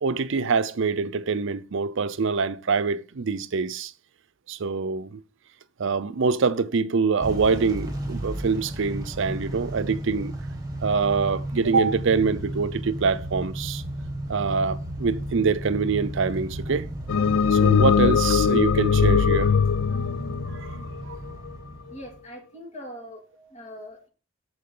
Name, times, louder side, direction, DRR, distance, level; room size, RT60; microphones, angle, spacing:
voice 1, 0.0-3.9 4.5-5.2 5.8-10.3 10.8-13.8 14.3-16.9 17.5-19.5 19.9-20.0 20.5-20.7 21.0-21.2, right 5 dB, 65° right, 0.6 m, -25 dB
Motor vehicle (road) / Engine starting / Accelerating revving vroom, 7.2-22.2, right 1 dB, 20° right, 1.7 m, -34 dB
sound 1, 17.1-21.5, left 6 dB, 75° left, 0.3 m, -21 dB
voice 2, 21.9-24.1, equal, 35° left, 2.3 m, -42 dB
13.0 x 4.7 x 3.8 m
head